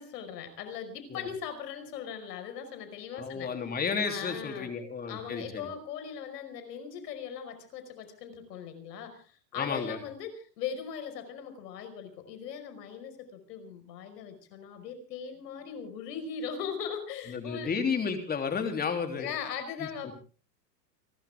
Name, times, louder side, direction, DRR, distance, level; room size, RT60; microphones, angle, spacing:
voice 1, 0.0-3.5 4.1-4.7 5.1-17.7 19.1-20.1, left 7 dB, 75° left, 8 dB, 5.5 m, -39 dB
voice 2, 3.1-5.7 9.5-10.0 17.3-19.3 19.8-20.1, left 5 dB, 20° left, 6 dB, 3.3 m, -32 dB
29.5 x 13.0 x 3.7 m, 0.39 s
supercardioid pair, 130°, 49 cm